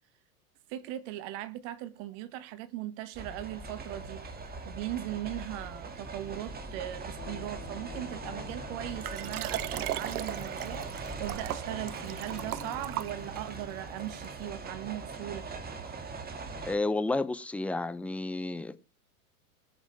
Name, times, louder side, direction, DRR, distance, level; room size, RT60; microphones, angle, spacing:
voice 1, 0.7-4.2 4.6-15.5, right 14 dB, 45° right, 1.2 m, -39 dB
sound 1, 3.1-16.8, right 3 dB, 20° right, 2.0 m, -41 dB
Guitar, 7.2-10.9 11.6-16.4, left 10 dB, 40° left, 2.3 m, -52 dB
Liquid, 9.0-13.6 14.2-14.3, right 14 dB, 70° right, 0.8 m, -37 dB
voice 2, 16.6-18.8, left 2 dB, 5° left, 0.5 m, -31 dB
20.5 x 7.4 x 3.3 m
hypercardioid pair, 105°, 46 cm